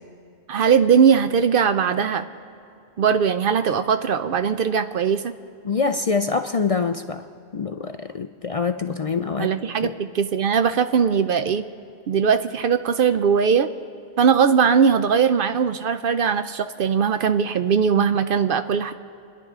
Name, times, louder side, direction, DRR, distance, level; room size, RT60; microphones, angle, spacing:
voice 1, 0.5-2.3 3.0-5.3 9.4-11.6 12.1-13.7 14.2-18.9, right 7 dB, 60° right, 10 dB, 0.6 m, -20 dB
voice 2, 5.6-7.3 7.5-9.5 9.8-9.9 18.0-18.1, left 5 dB, 50° left, 8 dB, 0.4 m, -25 dB
30.0 x 11.0 x 3.6 m, 2.7 s
omnidirectional pair, 1.1 m